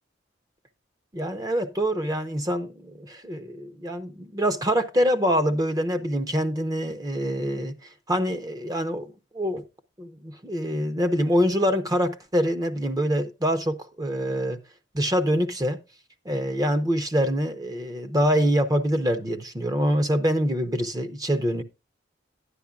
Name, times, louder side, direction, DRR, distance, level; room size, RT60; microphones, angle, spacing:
voice 1, 1.1-7.8 8.1-9.6 10.0-14.6 14.9-15.8 16.2-21.6, equal, 20° right, 0.7 m, -25 dB
12.5 x 9.9 x 2.3 m
head